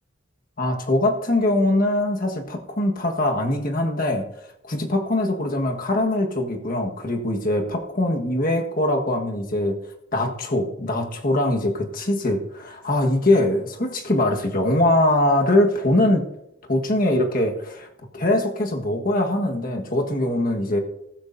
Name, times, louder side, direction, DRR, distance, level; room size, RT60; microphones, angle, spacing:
voice 1, 0.6-4.2 4.6-9.8 10.1-16.3 16.7-17.9 18.1-20.8, left 1 dB, 45° left, 3 dB, 1.5 m, -22 dB
15.0 x 13.5 x 2.7 m, 0.82 s
head